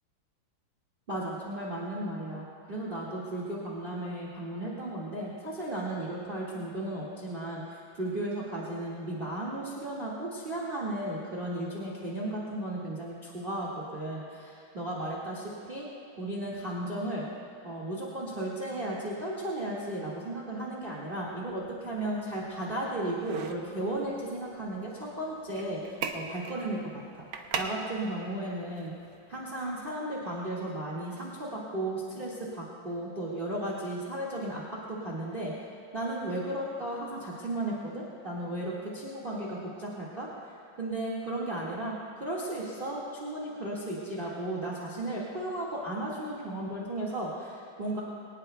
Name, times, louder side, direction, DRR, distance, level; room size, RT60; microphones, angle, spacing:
voice 1, 1.1-15.9 16.2-17.3 17.6-28.9 29.3-35.5 35.9-40.3 40.7-48.0, right 1 dB, 25° right, -5 dB, 1.9 m, -35 dB
sound 1, 21.2-30.0, right 5 dB, 70° right, 1.7 m, -42 dB
23.0 x 19.0 x 2.3 m, 2.7 s
omnidirectional pair, 2.4 m